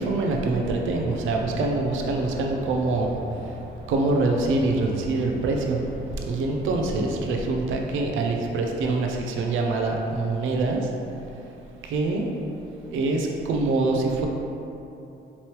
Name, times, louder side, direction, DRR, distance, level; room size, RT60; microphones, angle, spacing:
voice 1, 0.0-3.6 3.9-5.9 6.3-10.9 11.8-12.3 12.9-14.3, right 3 dB, 80° right, 1 dB, 0.5 m, -25 dB
sound 1, 0.8-7.1, equal, 35° right, 1.2 m, -40 dB
3.6 x 3.0 x 3.1 m, 2.8 s
cardioid pair, 90°, 20 cm